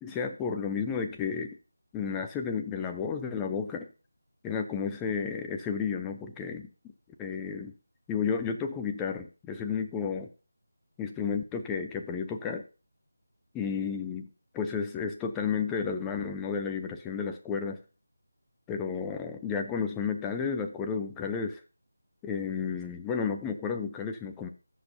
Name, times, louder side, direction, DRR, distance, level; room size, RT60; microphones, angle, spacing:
voice 1, 0.0-1.6 1.9-3.9 4.4-6.7 7.2-7.7 8.1-10.3 11.0-12.6 13.5-14.3 14.5-17.8 18.7-21.6 22.2-24.5, left 6 dB, 10° left, 5 dB, 0.7 m, -32 dB
16.0 x 6.8 x 2.8 m, 0.33 s
figure-of-eight pair, 160°, 0 cm